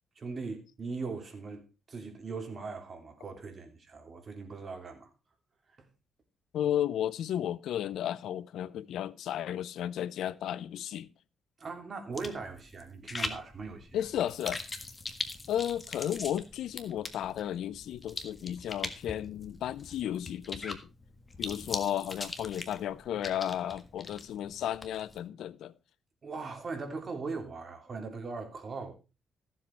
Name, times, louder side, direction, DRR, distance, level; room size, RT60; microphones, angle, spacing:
voice 1, 0.1-5.1 5.7-5.9 11.6-14.0 26.2-28.9, right 4 dB, 35° right, 3.2 m, -40 dB
voice 2, 6.5-11.1 13.9-14.6 15.5-20.8 21.4-25.7, left 11 dB, 80° left, 0.6 m, -33 dB
sound 1, 12.1-25.2, left 3 dB, 25° left, 1.6 m, -42 dB
14.5 x 7.7 x 4.5 m
cardioid pair, 115°, 0 cm